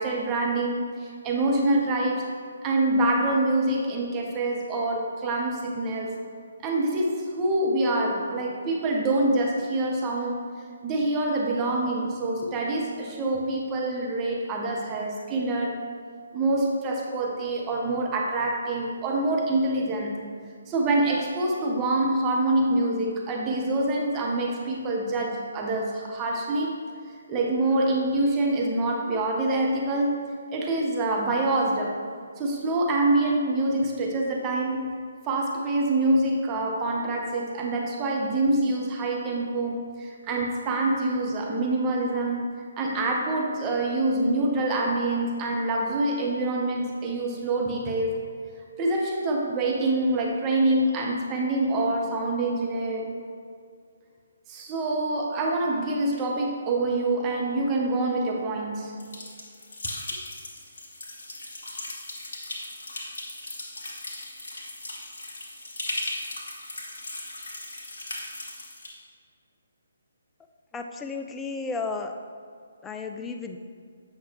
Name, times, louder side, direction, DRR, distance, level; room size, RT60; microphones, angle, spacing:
voice 1, 0.0-2.3 2.6-6.1 6.6-10.4 10.8-15.8 16.3-20.3 20.7-26.8 27.3-30.2 30.5-32.0 32.4-34.9 35.2-42.5 42.8-48.2 48.8-53.1 54.5-59.0, right 2 dB, 20° right, -1 dB, 0.8 m, -26 dB
sound 1, 59.0-68.9, left 2 dB, 55° left, 1.3 m, -37 dB
voice 2, 70.7-72.1 72.8-73.6, left 4 dB, 10° left, 5 dB, 0.4 m, -33 dB
8.1 x 5.7 x 3.1 m, 2.2 s
figure-of-eight pair, 135°, 0 cm